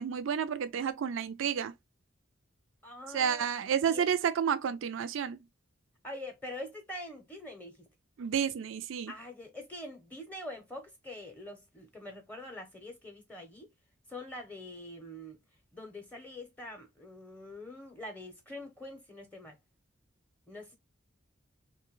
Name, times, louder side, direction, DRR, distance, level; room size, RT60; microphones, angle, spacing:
voice 1, 0.0-1.7 3.1-5.4 8.2-9.1, right 8 dB, 75° right, 0.4 m, -30 dB
voice 2, 2.8-3.5 3.8-4.0 6.0-7.8 9.1-13.7 14.1-15.4 15.7-19.6 20.5-20.8, left 1 dB, 10° left, 0.6 m, -44 dB
3.0 x 2.2 x 3.0 m
head